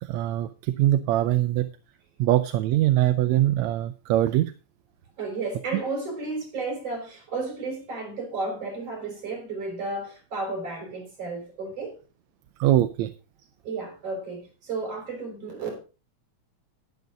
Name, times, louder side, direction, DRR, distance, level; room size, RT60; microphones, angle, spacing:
voice 1, 0.1-1.7 2.2-4.5 5.7-5.8 12.6-13.1, right 13 dB, 75° right, 1.9 m, -22 dB
voice 2, 5.2-11.9 13.6-15.8, right 3 dB, 55° right, 5.8 m, -33 dB
11.5 x 10.5 x 3.9 m
omnidirectional pair, 3.3 m